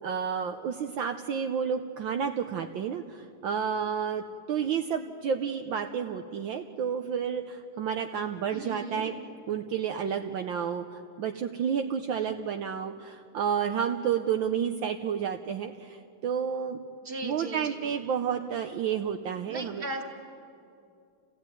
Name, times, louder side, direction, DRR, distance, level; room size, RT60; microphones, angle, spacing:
voice 1, 0.0-4.2 4.5-9.1 9.5-16.8 17.2-19.8, right 7 dB, 70° right, 5 dB, 1.5 m, -30 dB
voice 2, 8.5-9.0 17.0-17.9 19.5-20.0, right 2 dB, 25° right, 2 dB, 2.3 m, -37 dB
29.5 x 16.0 x 9.1 m, 2.5 s
omnidirectional pair, 2.4 m